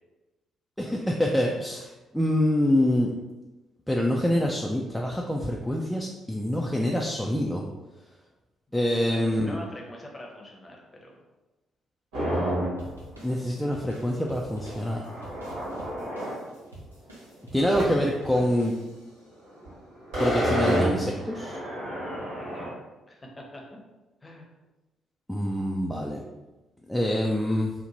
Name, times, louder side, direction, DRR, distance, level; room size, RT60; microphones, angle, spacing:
voice 1, 0.8-3.1 3.9-7.6 8.7-9.6 13.2-15.0 17.5-18.7 20.2-21.6 25.3-26.2 26.9-27.7, left 1 dB, 5° left, -1 dB, 0.3 m, -26 dB
voice 2, 8.7-11.2 22.4-22.8 23.1-23.8 24.2-24.5, equal, 20° left, -1 dB, 0.7 m, -44 dB
sound 1, 12.1-12.9 13.3-13.4 13.6-16.3 17.7-18.0 18.3-18.4 19.5-19.7 20.0-22.7, equal, 70° right, 1.1 m, -29 dB
sound 2, 12.8-19.3, right 1 dB, 85° right, 0.4 m, -47 dB
2.6 x 2.1 x 2.9 m, 1.1 s
figure-of-eight pair, 40°, 0 cm